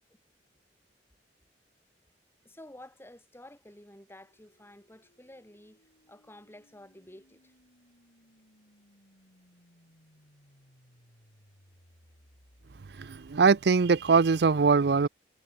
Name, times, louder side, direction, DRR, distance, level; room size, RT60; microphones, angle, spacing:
voice 1, 2.4-7.6, left 1 dB, 15° left, 4.0 m, -51 dB
sound 1, 3.8-13.9, equal, 70° left, 7.4 m, -63 dB
voice 2, 12.9-15.1, right 5 dB, 65° right, 0.5 m, -22 dB
head